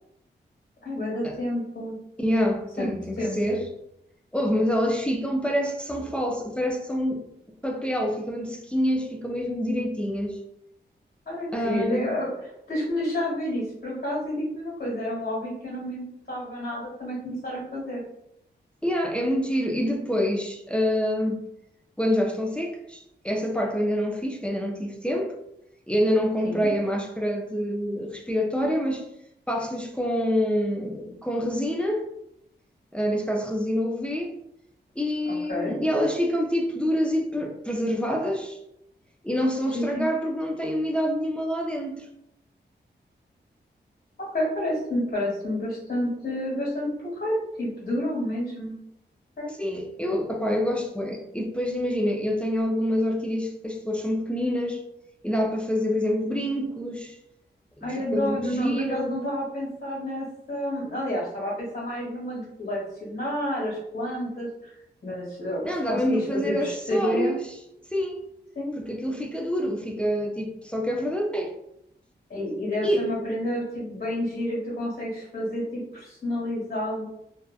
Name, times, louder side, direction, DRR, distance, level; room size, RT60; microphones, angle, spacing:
voice 1, 0.8-2.0 2.8-2.9 3.2-3.4 11.2-12.3 12.7-18.0 26.4-26.7 35.2-35.8 39.7-40.1 44.3-48.7 49.4-49.5 57.8-67.4 68.5-68.7 72.3-77.1, left 1 dB, 60° left, 1.4 m, -30 dB
voice 2, 2.2-3.6 4.3-7.2 7.6-10.4 11.5-12.0 18.8-21.4 22.0-25.4 25.9-29.1 29.5-32.1 32.9-34.4 35.0-38.6 39.2-42.1 49.6-54.8 55.2-57.2 57.8-59.1 65.6-67.5 67.9-68.3 68.8-71.6 72.8-73.1, equal, 5° left, 0.3 m, -26 dB
2.7 x 2.2 x 2.2 m
wide cardioid pair, 110°, 18 cm